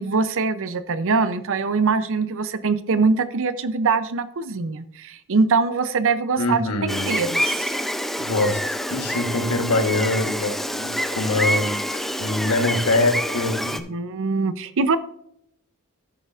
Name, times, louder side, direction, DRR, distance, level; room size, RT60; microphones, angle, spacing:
voice 1, 0.0-7.7 13.9-15.0, right 4 dB, 60° right, 13 dB, 0.6 m, -23 dB
voice 2, 6.4-7.2 8.2-14.0, left 2 dB, 85° left, 6 dB, 1.3 m, -24 dB
Gull seagull, 6.9-13.8, equal, ahead, 0.5 m, -27 dB
14.0 x 6.6 x 2.5 m, 0.71 s
head